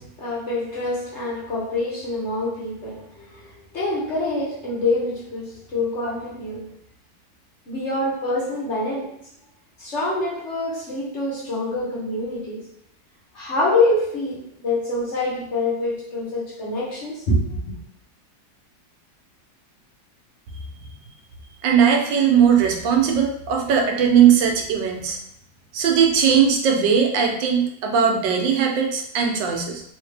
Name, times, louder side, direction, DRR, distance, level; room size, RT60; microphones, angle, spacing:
voice 1, 0.0-6.7 7.7-9.2 9.8-12.6 13.3-17.8, left 2 dB, 45° left, -6 dB, 1.1 m, -26 dB
voice 2, 21.6-25.2 25.7-29.8, right 7 dB, 85° right, 2 dB, 1.4 m, -19 dB
3.5 x 2.8 x 3.2 m, 0.71 s
omnidirectional pair, 1.9 m